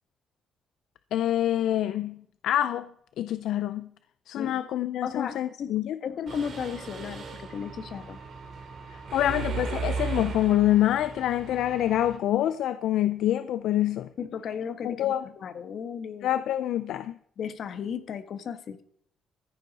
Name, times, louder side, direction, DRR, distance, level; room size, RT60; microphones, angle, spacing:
voice 1, 1.1-2.9 3.2-3.9 4.3-6.0 8.9-14.1 14.8-15.2 16.2-17.1, left 12 dB, 80° left, 0.4 m, -26 dB
voice 2, 5.0-5.7 6.0-8.2 14.2-16.3 17.4-18.8, left 7 dB, 65° left, 1.3 m, -35 dB
Mechanisms, 6.3-12.2, right 5 dB, 60° right, 3.0 m, -36 dB
14.5 x 9.9 x 4.1 m
cardioid pair, 90°, 0 cm